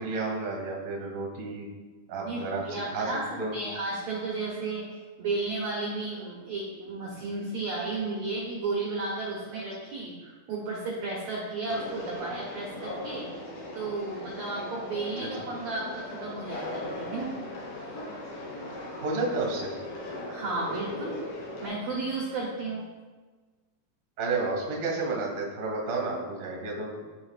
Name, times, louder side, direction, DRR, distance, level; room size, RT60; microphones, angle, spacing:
voice 1, 0.0-1.7 2.1-2.6 2.9-3.1 3.4-3.5 19.0-19.7 24.2-27.0, right 3 dB, 35° right, -1 dB, 1.4 m, -31 dB
voice 2, 2.3-13.3 13.7-17.4 17.8-17.9 20.3-21.2 21.6-22.8, right 3 dB, 65° right, -3 dB, 1.8 m, -33 dB
Conversation, 11.7-21.7, left 2 dB, 85° left, 3.7 m, -38 dB
13.5 x 5.2 x 2.4 m, 1.3 s
omnidirectional pair, 4.3 m